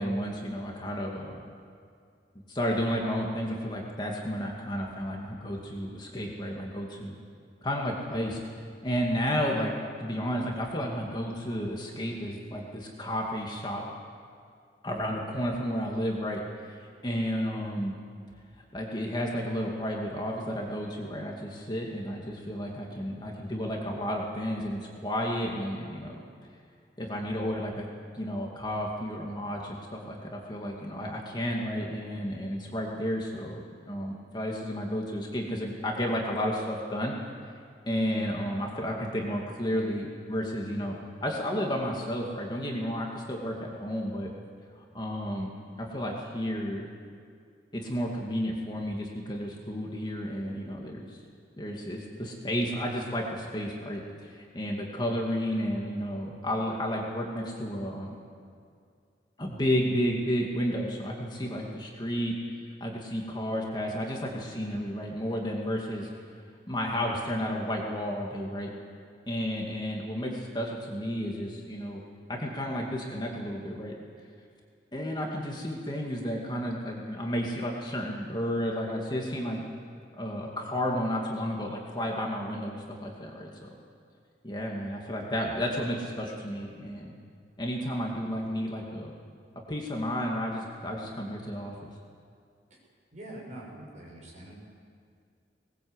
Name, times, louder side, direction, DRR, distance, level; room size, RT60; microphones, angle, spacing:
voice 1, 0.0-1.4 2.5-7.1 7.6-8.4 8.8-9.7 10.0-13.8 14.8-16.8 17.0-18.0 18.7-26.2 27.0-27.9 28.1-37.2 37.9-44.3 44.9-45.5 45.8-46.9 47.7-51.2 51.6-58.1 59.4-62.4 62.8-66.1 66.7-68.7 69.3-72.0 72.3-74.0 74.9-79.6 80.1-83.8 84.4-87.1 87.6-89.1 89.7-91.9, equal, 25° left, -1 dB, 2.4 m, -32 dB
voice 2, 93.1-94.5, right 1 dB, 40° right, -2 dB, 6.5 m, -44 dB
21.0 x 20.0 x 8.1 m, 2.3 s
head